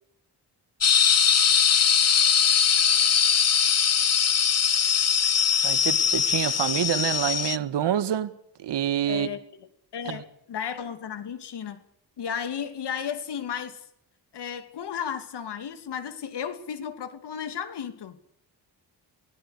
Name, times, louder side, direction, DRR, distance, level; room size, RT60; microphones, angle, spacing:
sound 1, 0.8-7.6, left 7 dB, 40° left, 0.9 m, -21 dB
voice 1, 5.6-8.3 8.6-9.3 10.1-10.2, right 10 dB, 85° right, 1.7 m, -27 dB
voice 2, 9.1-9.4 9.9-11.8 12.2-13.8 14.3-18.2, left 8 dB, 75° left, 2.8 m, -34 dB
24.0 x 17.0 x 8.4 m
wide cardioid pair, 125°, 41 cm